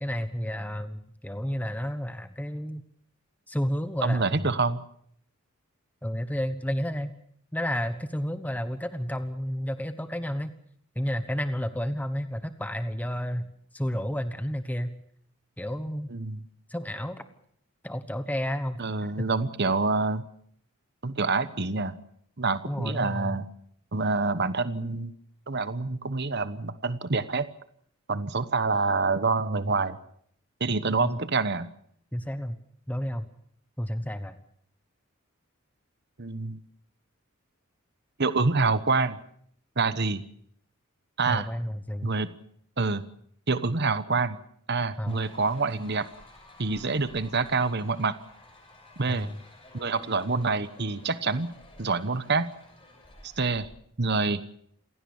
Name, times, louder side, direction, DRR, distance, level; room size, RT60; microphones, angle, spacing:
voice 1, 0.0-2.8 3.5-4.5 6.0-7.1 7.5-10.5 10.9-14.9 15.6-16.1 16.7-17.2 17.8-19.3 22.7-23.4 31.0-31.1 32.1-32.6 32.9-33.3 33.8-34.4 41.2-42.1 45.0-45.2 49.1-49.4, equal, 5° left, 10 dB, 1.1 m, -31 dB
voice 2, 4.0-4.8 16.1-16.4 18.8-20.2 21.0-22.0 22.4-23.5 23.9-25.1 25.5-27.5 28.1-30.0 30.6-31.7 36.2-36.6 38.2-39.2 39.8-40.2 41.2-41.5 42.0-42.3 42.8-43.0 43.5-44.4 44.7-46.1 46.6-48.1 49.0-49.3 49.7-51.5 51.8-52.5 53.2-53.7 54.0-54.4, right 3 dB, 50° right, 13 dB, 1.1 m, -26 dB
sound 1, 45.1-53.7, left 2 dB, 25° left, 6.6 m, -52 dB
28.0 x 17.0 x 7.1 m, 0.65 s
head